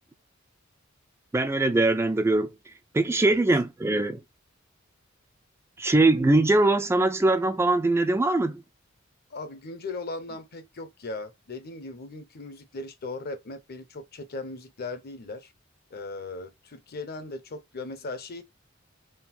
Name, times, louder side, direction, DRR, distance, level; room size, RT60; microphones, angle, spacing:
voice 1, 1.3-2.5 2.9-4.2 5.8-8.6, right 2 dB, 10° right, 0.3 m, -22 dB
voice 2, 9.3-15.5 15.9-18.4, left 3 dB, 50° left, 0.8 m, -38 dB
3.8 x 2.2 x 4.2 m
head